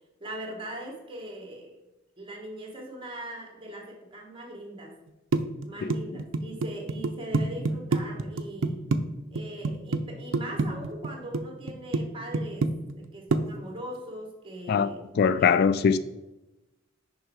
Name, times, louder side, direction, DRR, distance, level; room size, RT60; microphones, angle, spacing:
voice 1, 0.2-1.8 2.2-4.9 5.7-8.8 9.3-15.1 15.4-15.6, right 1 dB, 25° right, 1.8 m, -40 dB
sound 1, 5.3-9.0 9.4-10.0 10.3-11.4 11.7-12.0 12.3-13.1 13.3-13.4, right 3 dB, 85° right, 0.5 m, -26 dB
voice 2, 14.7-16.0, left 6 dB, 55° left, 0.3 m, -22 dB
6.4 x 5.5 x 4.7 m
head